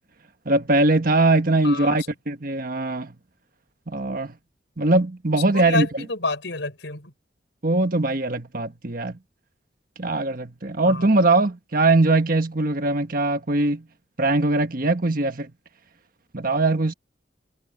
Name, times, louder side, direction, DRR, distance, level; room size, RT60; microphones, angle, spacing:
voice 1, 0.4-3.1 3.9-4.3 4.8-6.0 7.6-9.2 10.0-13.8 14.2-15.5 16.3-16.9, right 2 dB, 50° right, 1.5 m, -21 dB
voice 2, 1.6-2.1 5.5-7.1 10.9-11.0, left 3 dB, 75° left, 5.8 m, -29 dB
head